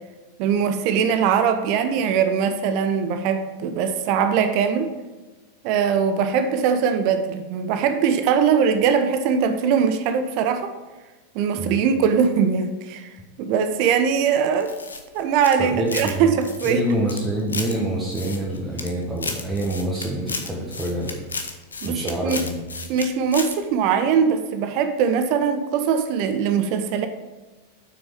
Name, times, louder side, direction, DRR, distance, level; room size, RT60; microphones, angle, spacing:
voice 1, 0.4-4.9 5.6-10.7 11.3-13.1 13.4-14.7 15.1-16.8 21.8-22.4 22.9-27.1, right 7 dB, 45° right, 8 dB, 0.7 m, -21 dB
sound 1, 14.6-16.1 16.4-17.7 18.1-18.9 19.2-23.1 23.3-23.5, left 4 dB, 75° left, 1.0 m, -32 dB
voice 2, 15.6-16.3 16.6-21.1 21.8-22.6, right 1 dB, 10° right, -5 dB, 1.7 m, -26 dB
7.8 x 6.2 x 5.1 m, 1.2 s
figure-of-eight pair, 90°, 0 cm